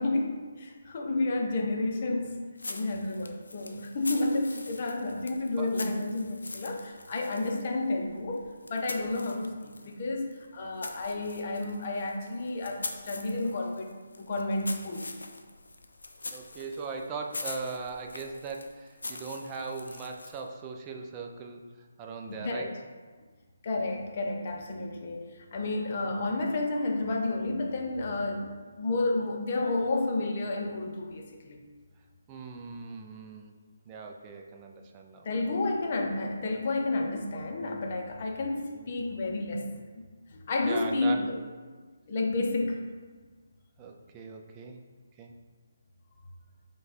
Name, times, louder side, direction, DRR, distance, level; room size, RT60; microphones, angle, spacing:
voice 1, 0.0-15.1 22.3-22.7 23.6-28.5 28.8-31.6 35.2-39.7 40.0-40.1 40.3-41.4 42.1-42.8, left 2 dB, 45° left, 1 dB, 0.6 m, -31 dB
sound 1, 2.6-10.0 10.3-20.5, left 2 dB, 85° left, 0.4 m, -43 dB
voice 2, 16.3-21.6 22.0-22.7 26.3-26.4 32.3-33.5 33.9-35.3 37.6-37.8 38.7-38.9 39.3-39.4 40.6-41.3 43.8-44.8 45.2-45.3, right 4 dB, 20° right, 2 dB, 0.4 m, -39 dB
5.0 x 2.3 x 4.1 m, 1.5 s
hypercardioid pair, 155°, 0 cm